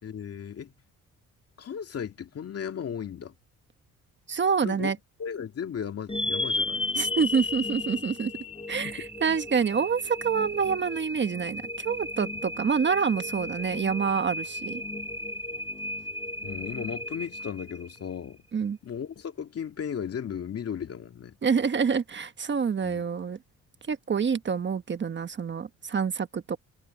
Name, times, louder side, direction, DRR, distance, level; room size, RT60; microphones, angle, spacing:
voice 1, 0.0-0.7 1.6-3.3 4.6-4.9 5.2-7.0 8.8-9.1 16.4-18.4 18.8-21.4 22.8-23.0, left 8 dB, 50° left, 2.5 m, -36 dB
voice 2, 4.3-5.0 7.0-8.3 8.7-14.8 18.5-18.8 21.4-23.4 23.9-26.6, right 6 dB, 40° right, 1.3 m, -27 dB
sound 1, 6.1-18.2, left 2 dB, 20° left, 3.8 m, -34 dB
cardioid pair, 90°, 30 cm